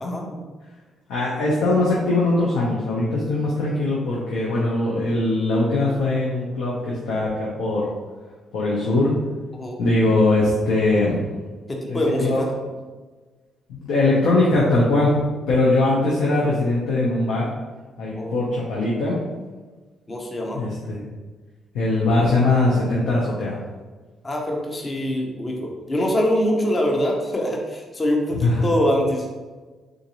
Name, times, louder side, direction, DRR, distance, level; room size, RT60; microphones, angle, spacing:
voice 1, 0.0-0.5 9.5-9.8 11.7-12.5 18.2-18.4 20.1-20.6 24.2-29.3, equal, 25° left, 0 dB, 0.6 m, -24 dB
voice 2, 1.1-7.8 8.5-9.1 9.8-11.3 11.9-12.4 13.7-15.2 15.5-17.5 18.0-19.2 20.6-21.1 21.7-23.6 28.3-28.6, left 2 dB, 90° left, -5 dB, 0.6 m, -21 dB
3.7 x 2.5 x 2.9 m, 1.3 s
cardioid pair, 90°, 0 cm